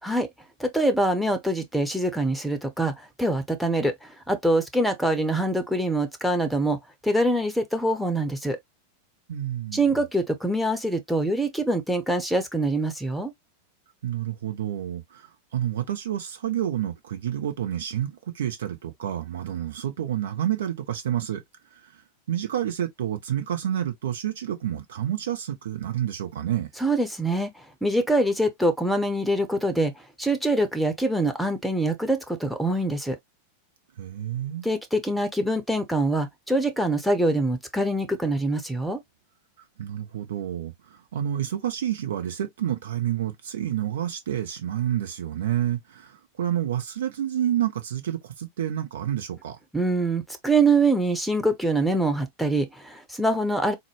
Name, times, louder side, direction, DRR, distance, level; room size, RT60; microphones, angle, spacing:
voice 1, 0.6-8.6 9.7-13.3 26.8-27.5 27.8-29.9 30.2-33.2 34.6-39.0 49.7-53.7, right 1 dB, ahead, 0.8 m, -24 dB
voice 2, 9.3-9.9 14.0-21.4 22.3-26.7 34.0-34.7 39.8-49.6, right 11 dB, 60° right, 0.8 m, -29 dB
4.0 x 2.2 x 3.0 m
figure-of-eight pair, 90°, 0 cm